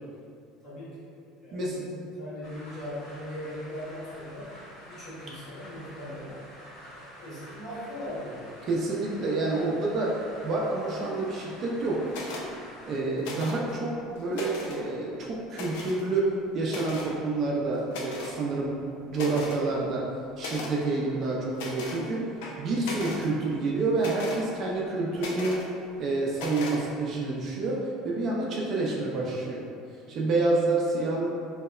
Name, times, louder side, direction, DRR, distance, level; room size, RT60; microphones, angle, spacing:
voice 1, 0.6-1.9 2.2-4.5 4.9-6.3 6.9-8.7, left 1 dB, 40° left, -11 dB, 1.4 m, -39 dB
voice 2, 1.5-1.8 8.7-10.2 10.4-12.0 12.9-18.7 19.1-20.0 20.4-22.2 22.6-25.6 26.0-29.6 30.1-31.3, right 3 dB, 40° right, -3 dB, 0.3 m, -28 dB
sound 1, 2.4-13.0, equal, 65° left, 1.0 m, -48 dB
sound 2, 12.1-12.5 13.2-13.7 14.2-14.8 15.5-16.0 16.7-17.1 17.9-18.4 18.8-18.9 19.1-19.6 20.4-20.7 21.5-22.0 22.4-23.3 24.0-24.4 25.2-25.6 26.3-26.8, left 3 dB, 85° left, 0.3 m, -37 dB
2.7 x 2.0 x 2.3 m, 2.4 s
cardioid pair, 130°, 0 cm